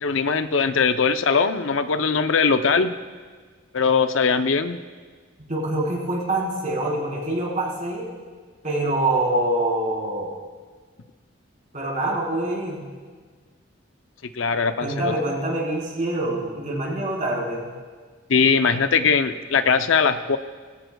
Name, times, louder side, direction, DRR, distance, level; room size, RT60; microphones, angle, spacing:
voice 1, 0.0-2.9 3.7-4.8 14.3-15.1 18.3-20.4, left 5 dB, 80° left, 9 dB, 0.6 m, -20 dB
voice 2, 5.5-8.1 8.6-10.3 11.7-12.8 14.8-17.7, right 1 dB, 40° right, -4 dB, 3.9 m, -25 dB
21.0 x 16.0 x 2.3 m, 1.5 s
head